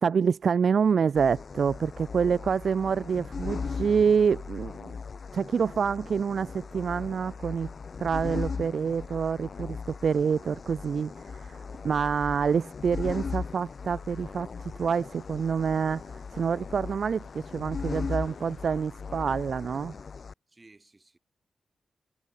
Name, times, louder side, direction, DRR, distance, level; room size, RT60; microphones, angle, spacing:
voice 1, 0.0-5.0 5.3-7.7 8.0-19.9, right 6 dB, 55° right, 0.6 m, -27 dB
sound 1, 1.2-20.3, left 5 dB, 45° left, 1.3 m, -38 dB
voice 2, 11.7-12.0 20.5-21.2, right 2 dB, 20° right, 7.3 m, -58 dB
sound 2, 13.1-19.5, left 7 dB, 70° left, 7.3 m, -59 dB
wide cardioid pair, 150°, 0 cm